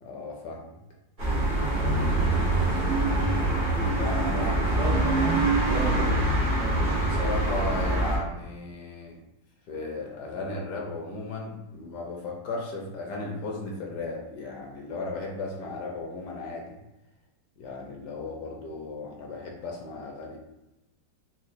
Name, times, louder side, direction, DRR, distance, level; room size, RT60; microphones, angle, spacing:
voice 1, 0.0-0.7 3.9-4.8 6.9-9.2 9.7-16.7 17.6-20.4, left 3 dB, 70° left, -1 dB, 1.1 m, -35 dB
sound 1, 1.2-8.2, right 2 dB, 50° right, 0.6 m, -24 dB
voice 2, 1.8-2.7 4.3-6.2, right 3 dB, 70° right, -1 dB, 1.1 m, -34 dB
4.1 x 2.2 x 2.6 m, 0.95 s
omnidirectional pair, 2.1 m